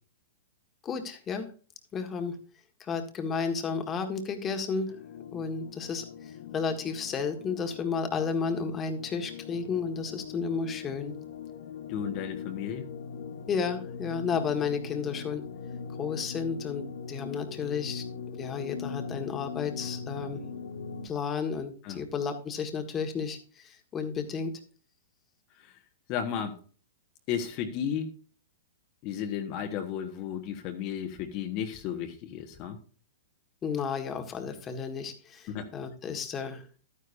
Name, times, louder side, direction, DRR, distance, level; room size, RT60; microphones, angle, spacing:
voice 1, 0.8-1.5 1.9-2.3 2.8-4.9 5.3-6.0 6.5-11.1 13.5-15.4 16.0-18.0 18.4-20.4 21.0-23.4 23.6-24.5 33.6-36.6, left 5 dB, 20° left, 5 dB, 1.7 m, -32 dB
sound 1, 4.9-21.1, left 6 dB, 75° left, 1.4 m, -41 dB
voice 2, 11.9-12.8 21.8-22.0 26.1-26.6 27.3-28.1 29.0-32.8 35.5-35.7, left 8 dB, 40° left, 6 dB, 1.4 m, -33 dB
12.0 x 9.8 x 2.7 m, 0.39 s
hypercardioid pair, 130°, 0 cm